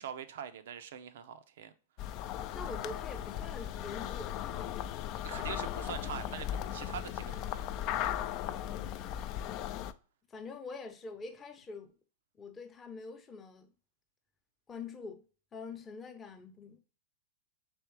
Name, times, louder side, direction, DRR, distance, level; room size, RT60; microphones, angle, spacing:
voice 1, 0.0-1.7 5.2-7.6, right 8 dB, 70° right, 0.5 m, -43 dB
sound 1, 2.0-9.9, left 11 dB, 45° left, 0.3 m, -37 dB
voice 2, 2.5-4.9 8.6-9.4 10.3-11.9 12.4-13.7 14.7-15.2 15.5-16.8, left 4 dB, 20° left, 0.7 m, -45 dB
3.5 x 3.1 x 4.4 m
hypercardioid pair, 110°, 0 cm